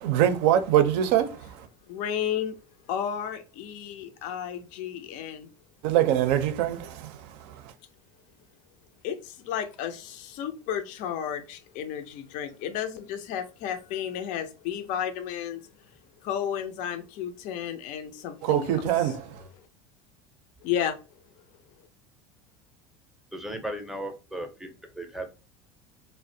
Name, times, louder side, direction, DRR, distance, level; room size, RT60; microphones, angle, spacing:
voice 1, 0.0-1.5 5.8-7.2 18.4-19.3, right 11 dB, 70° right, 0.5 m, -23 dB
voice 2, 1.9-2.6 2.9-5.5 9.0-15.6 16.2-19.1 20.6-21.0, left 9 dB, 55° left, 0.4 m, -32 dB
voice 3, 23.3-25.3, right 1 dB, ahead, 0.5 m, -36 dB
2.4 x 2.1 x 2.6 m
supercardioid pair, 105°, 15 cm